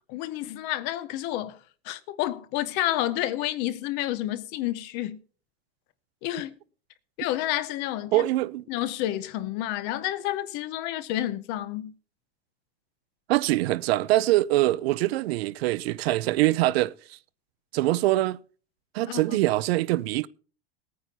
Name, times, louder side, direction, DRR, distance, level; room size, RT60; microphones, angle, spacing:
voice 1, 0.1-1.6 1.8-5.2 6.2-6.6 7.2-8.2 8.7-11.9 19.1-19.2, left 14 dB, 35° left, 0.6 m, -30 dB
voice 2, 8.1-8.6 13.3-17.2 17.7-18.4 18.9-20.3, right 17 dB, 70° right, 0.6 m, -24 dB
19.0 x 9.4 x 4.1 m
supercardioid pair, 180°, 32 cm